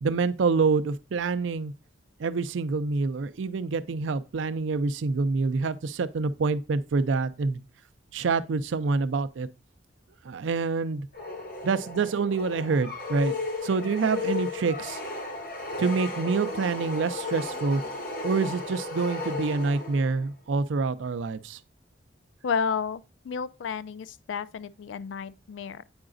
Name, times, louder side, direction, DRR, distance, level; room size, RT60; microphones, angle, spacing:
voice 1, 0.0-1.7 2.2-7.6 8.1-9.5 10.2-11.1 11.6-13.3 13.6-15.0 15.8-17.8 18.2-21.6, right 4 dB, 80° right, 0.4 m, -26 dB
sound 1, 11.1-20.2, left 3 dB, 50° left, 1.0 m, -34 dB
voice 2, 22.4-25.8, left 6 dB, 80° left, 0.3 m, -31 dB
8.7 x 4.8 x 2.5 m
head